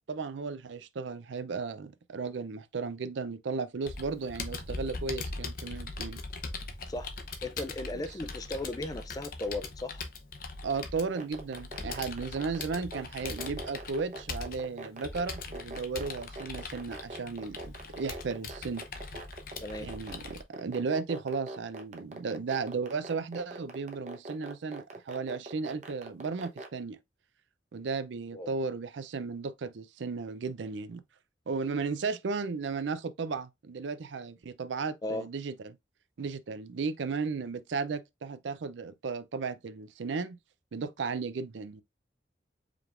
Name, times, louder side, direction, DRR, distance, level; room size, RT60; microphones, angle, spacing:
voice 1, 0.1-6.2 10.6-18.8 19.8-27.0 27.7-31.0 31.5-35.8 36.2-40.4 40.7-41.8, right 4 dB, 85° right, 0.5 m, -35 dB
Computer keyboard, 3.9-20.4, left 3 dB, 50° left, 0.7 m, -41 dB
voice 2, 7.4-10.0 19.6-19.9 28.3-28.5 35.0-35.3, left 2 dB, 20° left, 0.3 m, -36 dB
sound 1, 11.0-26.7, right 2 dB, 40° right, 0.8 m, -41 dB
4.9 x 3.4 x 2.4 m
head